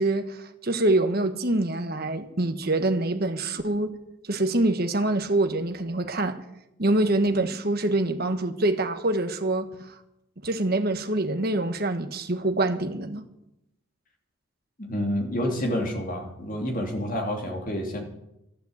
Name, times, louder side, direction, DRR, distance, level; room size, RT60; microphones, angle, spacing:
voice 1, 0.0-4.0 4.3-6.4 6.8-10.0 10.4-13.2, right 2 dB, 45° right, 1.3 m, -25 dB
voice 2, 14.8-18.0, equal, 40° left, 3.0 m, -28 dB
13.0 x 11.0 x 8.0 m
head